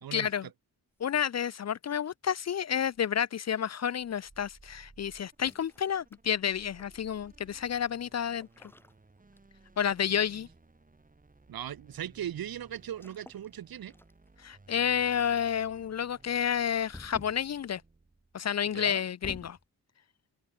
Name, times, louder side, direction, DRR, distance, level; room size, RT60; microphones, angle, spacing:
voice 1, 0.1-0.5 1.0-8.5 9.8-10.5 14.4-17.8 18.3-19.6, left 8 dB, 45° left, 0.4 m, -30 dB
sound 1, 1.0-1.7 2.9-3.3 5.3-7.0 8.4-9.8 10.1-10.4 12.9-13.5 13.9-14.4 16.9-17.5 18.7-19.7, left 1 dB, 5° left, 0.6 m, -51 dB
sound 2, 3.9-18.5, right 3 dB, 20° right, 7.6 m, -59 dB
voice 2, 11.5-13.9 18.7-19.0, right 10 dB, 65° right, 0.8 m, -38 dB
open air
wide cardioid pair, 160°, 39 cm